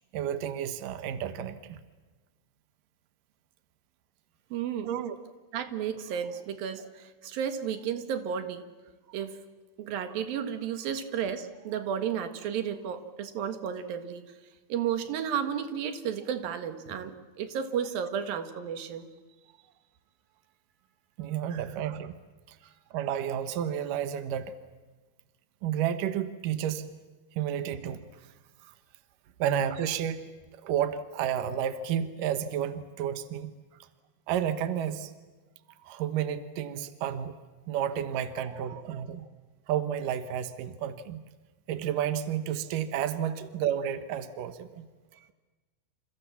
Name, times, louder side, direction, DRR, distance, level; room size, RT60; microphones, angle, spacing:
voice 1, 0.1-1.8 4.8-5.2 21.2-22.1 22.5-22.6 22.9-24.5 25.6-26.9 27.3-28.1 28.6-28.7 29.4-30.3 30.6-33.5 34.3-35.1 35.9-37.4 37.7-39.3 39.7-41.2 41.7-44.9, right 9 dB, 85° right, 10 dB, 1.9 m, -31 dB
voice 2, 4.5-4.9 5.5-8.6 9.1-9.4 9.8-14.3 14.7-19.1 21.5-21.6 38.7-38.8, right 8 dB, 60° right, 8 dB, 2.8 m, -33 dB
28.5 x 28.5 x 7.3 m, 1.3 s
omnidirectional pair, 5.7 m